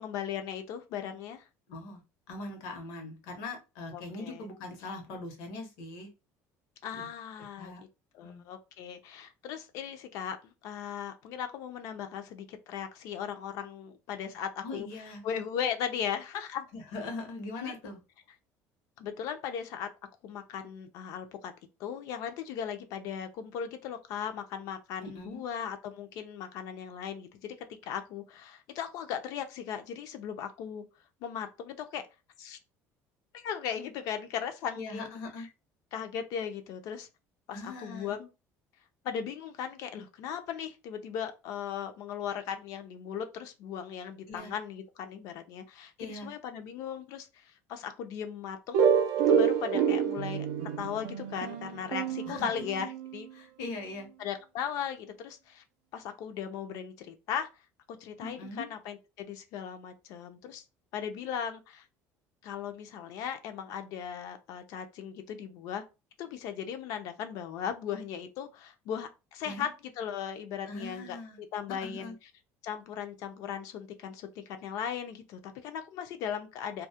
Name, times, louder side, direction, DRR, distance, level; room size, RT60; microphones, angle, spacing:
voice 1, 0.0-1.4 3.9-4.5 6.8-7.7 8.1-14.9 15.2-16.7 17.6-17.8 19.0-19.9 20.2-21.5 21.8-27.6 27.8-30.8 31.2-32.0 32.4-32.6 33.3-35.5 35.9-37.1 37.5-38.3 39.0-48.8 49.3-50.5 50.8-53.3 54.2-55.6 55.9-57.5 57.9-60.6 60.9-61.8 62.4-65.9 66.2-71.2 71.5-72.3 72.6-76.9, left 8 dB, 60° left, 0.4 m, -37 dB
voice 2, 1.7-2.0 2.3-6.1 6.9-7.1 7.6-7.8 8.2-8.4 14.6-15.2 16.7-18.0 25.0-25.4 34.8-35.5 37.5-38.2 44.3-44.5 46.0-46.3 52.2-52.5 53.3-54.1 58.2-58.7 69.4-69.7 70.7-71.4 71.7-72.1, left 2 dB, 85° left, 0.8 m, -41 dB
sound 1, 48.7-53.3, right 7 dB, 90° right, 0.4 m, -28 dB
2.2 x 2.0 x 2.7 m
cardioid pair, 165°, 6 cm